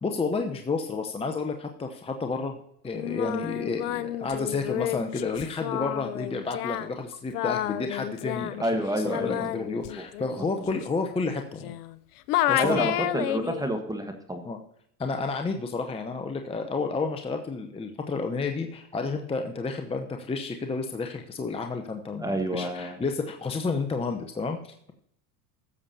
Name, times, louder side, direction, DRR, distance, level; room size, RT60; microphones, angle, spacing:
voice 1, 0.0-2.6 2.8-11.7 12.5-12.9 14.4-14.6 15.0-24.9, left 4 dB, 10° left, 5 dB, 0.7 m, -31 dB
Singing, 2.9-12.0 12.3-13.7, left 13 dB, 70° left, 0.7 m, -31 dB
voice 2, 8.6-9.5 10.0-10.1 10.4-10.6 12.6-14.4 22.2-23.0, right 1 dB, 10° right, 4 dB, 1.3 m, -29 dB
16.0 x 7.1 x 2.8 m, 0.70 s
hypercardioid pair, 90°, 47 cm